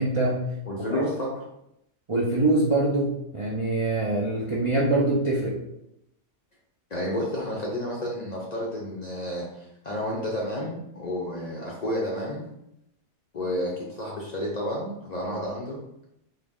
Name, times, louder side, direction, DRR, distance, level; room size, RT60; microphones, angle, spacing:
voice 1, 0.0-0.5 0.9-1.0 2.1-5.5, right 2 dB, 50° right, -5 dB, 0.4 m, -24 dB
voice 2, 0.7-1.4 6.9-12.4 13.3-15.8, left 1 dB, 50° left, -4 dB, 0.5 m, -31 dB
3.8 x 2.0 x 3.5 m, 0.82 s
omnidirectional pair, 1.3 m